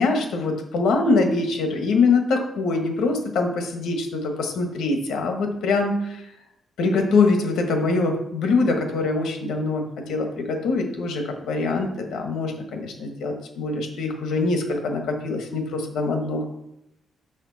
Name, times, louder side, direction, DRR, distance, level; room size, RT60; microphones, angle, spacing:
voice 1, 0.0-6.2 6.8-16.4, left 3 dB, 85° left, 4 dB, 1.4 m, -23 dB
7.2 x 6.6 x 4.1 m, 0.82 s
wide cardioid pair, 170°, 0 cm